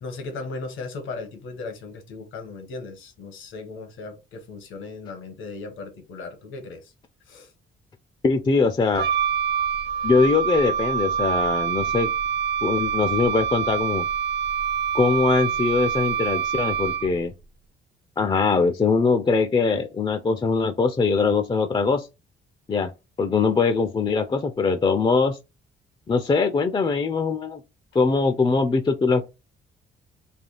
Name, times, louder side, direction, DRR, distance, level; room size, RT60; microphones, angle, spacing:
voice 1, 0.0-6.9 7.3-7.5, left 3 dB, 80° left, 1.2 m, -37 dB
voice 2, 8.2-9.1 10.0-12.1 12.6-14.1 14.9-17.3 18.2-22.1 22.7-22.9 23.2-25.4 26.1-27.6 27.9-29.3, left 4 dB, 25° left, 0.4 m, -22 dB
Wind instrument woodwind instrument, 8.9-17.3, right 8 dB, 55° right, 1.0 m, -25 dB
3.4 x 2.3 x 3.8 m
cardioid pair, 90°, 20 cm